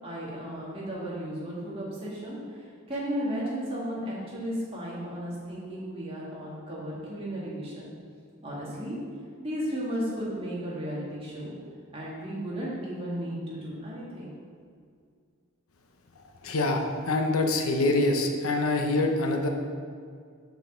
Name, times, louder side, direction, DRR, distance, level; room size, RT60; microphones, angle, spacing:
voice 1, 0.0-7.9 8.4-9.0 9.4-11.6 11.9-14.3, equal, 25° right, -7 dB, 2.1 m, -34 dB
voice 2, 16.4-19.5, left 2 dB, 85° left, 3 dB, 0.9 m, -25 dB
6.3 x 5.2 x 6.6 m, 2.2 s
head